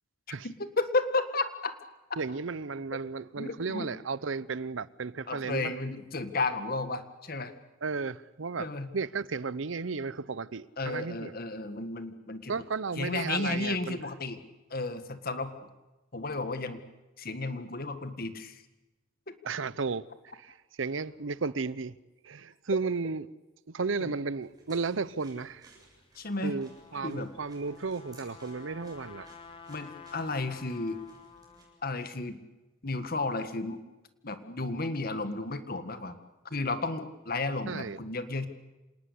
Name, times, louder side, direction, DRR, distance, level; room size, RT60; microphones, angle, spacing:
voice 1, 0.4-1.7 3.4-3.9 5.3-7.5 8.6-8.9 10.8-12.5 13.0-14.4 14.7-15.5 16.1-16.8 17.2-18.6 24.0-24.1 26.2-26.6 27.0-27.3 29.7-31.0 31.8-32.4 32.8-33.8 34.2-36.2 36.5-38.5, left 3 dB, 50° left, 1.8 m, -33 dB
voice 2, 2.2-5.7 7.8-8.7 8.9-11.3 12.5-14.0 19.4-20.1 20.4-22.0 22.2-23.3 23.7-25.7 26.4-29.3 37.7-38.0, right 4 dB, 85° right, 0.7 m, -34 dB
sound 1, 24.4-31.6, right 2 dB, 20° right, 7.5 m, -59 dB
Trumpet, 26.0-31.9, left 5 dB, 30° left, 1.8 m, -51 dB
27.0 x 19.0 x 8.5 m
head